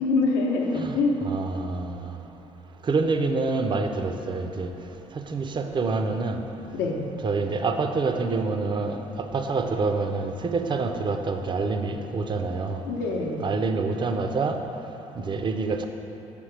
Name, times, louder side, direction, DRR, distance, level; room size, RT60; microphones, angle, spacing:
voice 1, 0.0-1.2 6.7-7.0 12.8-13.4, left 3 dB, 75° left, 0 dB, 0.7 m, -25 dB
voice 2, 1.2-2.1 2.8-4.7 5.3-6.4 7.2-12.8 13.4-14.6 15.2-15.9, right 3 dB, 30° right, 6 dB, 0.5 m, -27 dB
7.0 x 5.0 x 3.3 m, 3.0 s
hypercardioid pair, 55°, 15 cm